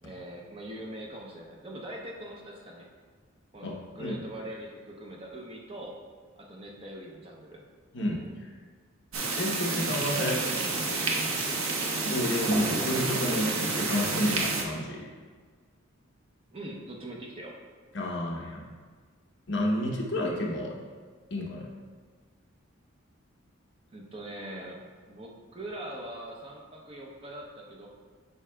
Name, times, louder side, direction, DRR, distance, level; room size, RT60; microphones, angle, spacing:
voice 1, 0.0-2.9 3.5-6.0 6.4-7.6 10.1-11.7 16.5-17.5 23.9-27.9, right 1 dB, 25° right, -1 dB, 0.7 m, -42 dB
voice 2, 7.9-8.5 9.4-10.4 12.0-15.1 17.9-18.6 19.5-20.8 21.3-21.7, left 1 dB, 55° left, -1 dB, 0.9 m, -30 dB
sound 1, 9.1-14.6, right 3 dB, 70° right, 0.8 m, -29 dB
8.3 x 5.4 x 2.3 m, 1.5 s
head